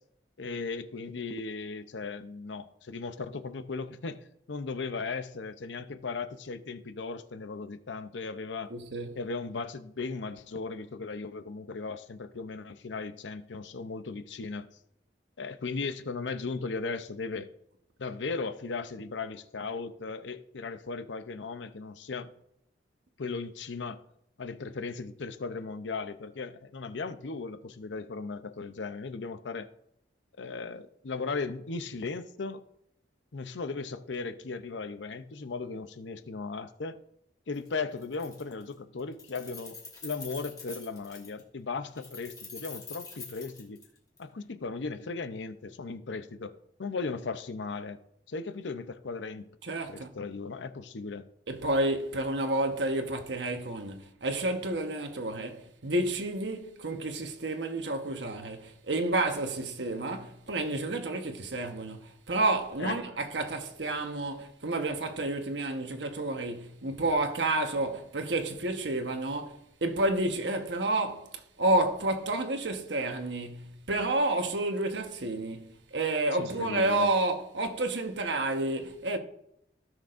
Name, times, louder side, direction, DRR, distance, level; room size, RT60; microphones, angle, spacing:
voice 1, 0.4-8.7 9.2-14.7 15.4-17.5 18.0-22.3 23.2-24.0 24.4-29.7 30.4-32.6 33.3-37.0 37.5-43.8 44.2-48.0 48.3-49.5 49.9-51.3 62.8-63.0 76.3-77.1, left 4 dB, 90° left, 0.6 m, -37 dB
voice 2, 8.7-9.2 49.6-50.1 51.5-79.2, right 2 dB, 80° right, 1.2 m, -30 dB
Keys jangling, 37.5-37.7 38.0-38.7 39.0-41.4 42.0-44.2, left 4 dB, 20° left, 2.2 m, -45 dB
16.5 x 6.2 x 2.6 m
head